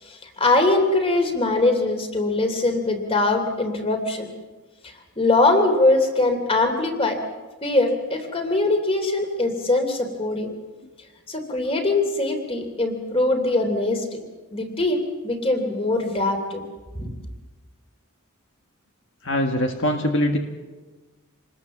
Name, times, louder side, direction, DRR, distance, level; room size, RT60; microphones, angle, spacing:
voice 1, 0.0-4.3 5.2-7.2 7.6-10.5 11.3-14.2 14.5-16.6 17.0-17.1, left 2 dB, 25° left, 6 dB, 3.0 m, -22 dB
voice 2, 19.2-20.4, left 1 dB, 60° left, 3 dB, 1.7 m, -22 dB
27.0 x 20.0 x 7.3 m, 1.3 s
head